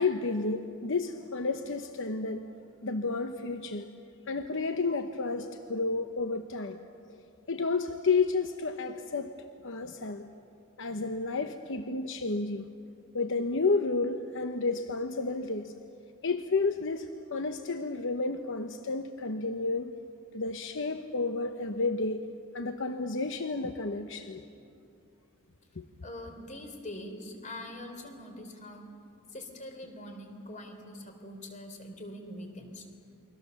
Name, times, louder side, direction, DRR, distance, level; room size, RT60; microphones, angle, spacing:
voice 1, 0.0-2.5 2.8-3.9 4.3-6.8 7.5-9.3 9.6-10.3 10.8-12.7 13.1-15.7 16.2-19.9 20.3-22.2 22.5-24.4 25.8-25.9, left 3 dB, 60° left, 7 dB, 0.9 m, -31 dB
voice 2, 26.0-28.9 29.3-32.9, left 1 dB, 35° left, 5 dB, 3.5 m, -43 dB
29.0 x 23.0 x 7.1 m, 2.6 s
head